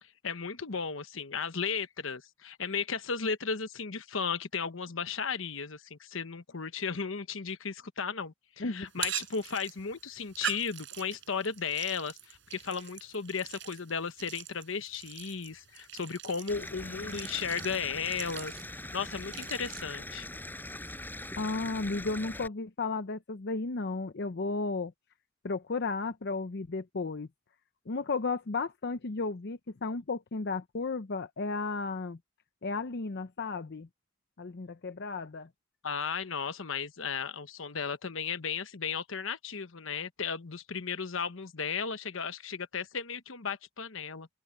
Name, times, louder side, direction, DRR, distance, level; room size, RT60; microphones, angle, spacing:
voice 1, 0.0-18.5 18.9-20.3 35.8-44.3, left 6 dB, 75° left, 1.1 m, -35 dB
sound 1, 8.9-19.8, right 10 dB, 65° right, 7.9 m, -43 dB
Stream / Liquid, 16.5-22.5, left 1 dB, 10° left, 5.2 m, -42 dB
voice 2, 21.4-24.9 25.4-27.3 27.9-32.2 32.6-33.9 34.4-35.5, left 3 dB, 55° left, 0.7 m, -34 dB
open air
head